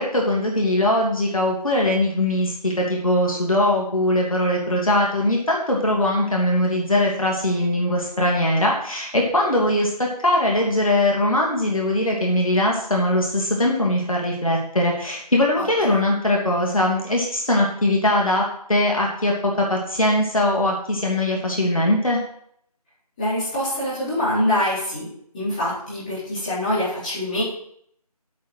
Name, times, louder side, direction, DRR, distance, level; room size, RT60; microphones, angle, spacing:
voice 1, 0.0-22.2, left 1 dB, 60° left, -1 dB, 2.9 m, -21 dB
voice 2, 15.6-16.0 23.2-25.1 25.3-27.4, left 1 dB, 10° left, -12 dB, 4.1 m, -24 dB
8.4 x 7.4 x 8.0 m, 0.66 s
figure-of-eight pair, 170°, 20 cm